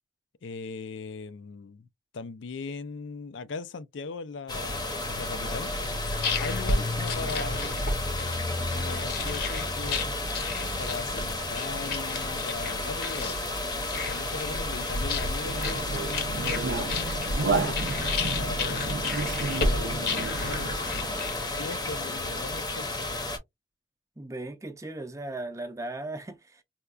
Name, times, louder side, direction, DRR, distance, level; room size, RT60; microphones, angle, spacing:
voice 1, 0.4-1.9 2.1-5.7 6.4-8.1 8.7-10.0 10.6-13.4 13.7-16.9 17.4-17.8 18.2-23.0, left 4 dB, 80° left, 0.4 m, -39 dB
sound 1, 4.5-23.4, left 2 dB, 20° left, 0.7 m, -32 dB
sound 2, 5.8-21.9, left 3 dB, 55° left, 0.8 m, -33 dB
voice 2, 6.8-7.3 24.2-26.6, right 2 dB, 15° right, 0.5 m, -38 dB
sound 3, 15.4-20.8, right 3 dB, 70° right, 0.4 m, -31 dB
4.3 x 2.2 x 2.3 m
head